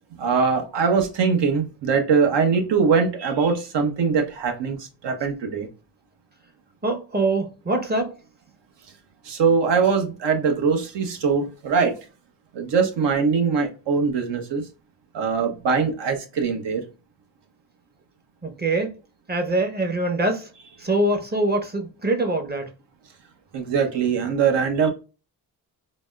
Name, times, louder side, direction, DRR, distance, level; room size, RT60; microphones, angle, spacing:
voice 1, 0.2-5.7 9.3-11.9 12.5-14.6 15.1-16.8 23.5-24.9, right 5 dB, 75° right, 0.9 m, -22 dB
voice 2, 6.8-8.1 18.4-18.9 19.3-20.5 20.8-22.7, right 2 dB, 25° right, 0.8 m, -24 dB
4.0 x 2.0 x 2.2 m
cardioid pair, 70°, 43 cm